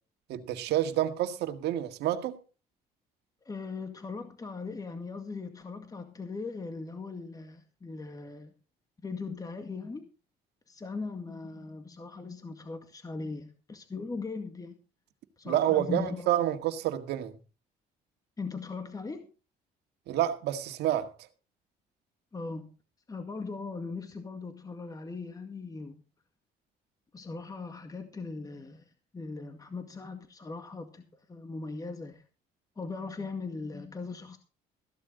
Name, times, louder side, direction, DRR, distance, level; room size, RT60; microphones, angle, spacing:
voice 1, 0.3-2.4 15.5-17.3 20.1-21.1, right 12 dB, 80° right, 1.9 m, -28 dB
voice 2, 3.4-8.5 9.0-10.1 10.7-14.8 15.4-16.5 18.4-19.3 22.3-22.7 23.1-26.0 27.1-32.2 32.8-34.4, left 4 dB, 20° left, 2.0 m, -39 dB
15.0 x 12.0 x 3.9 m
cardioid pair, 110°, 17 cm